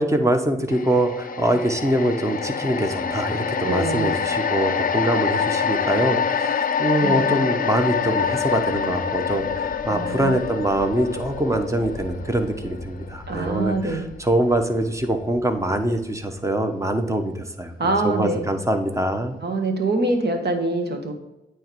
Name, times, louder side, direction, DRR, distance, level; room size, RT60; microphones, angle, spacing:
voice 1, 0.0-19.4, right 1 dB, 15° right, 6 dB, 1.1 m, -24 dB
sound 1, 0.7-15.0 15.4-15.5, left 6 dB, 40° left, 0.7 m, -26 dB
voice 2, 3.6-4.2 7.0-7.3 9.9-10.3 13.3-14.1 17.8-18.5 19.4-21.1, right 2 dB, 50° right, 4 dB, 1.5 m, -24 dB
8.8 x 3.3 x 4.7 m, 0.98 s
supercardioid pair, 50°, 21 cm